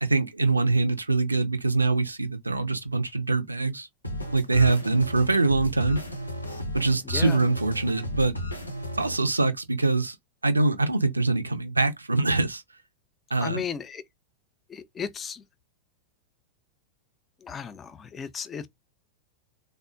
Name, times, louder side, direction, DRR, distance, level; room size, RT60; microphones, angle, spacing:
voice 1, 0.0-3.9 4.3-6.0 6.7-8.4 8.9-10.2 10.4-12.6 13.3-13.6, right 3 dB, 80° right, 0.4 m, -24 dB
sound 1, 4.0-9.1, left 1 dB, 85° left, 0.6 m, -34 dB
voice 2, 7.0-7.4 13.4-14.0 14.7-15.4 17.4-18.7, left 7 dB, 20° left, 0.4 m, -35 dB
3.5 x 2.1 x 2.4 m
figure-of-eight pair, 90°, 0 cm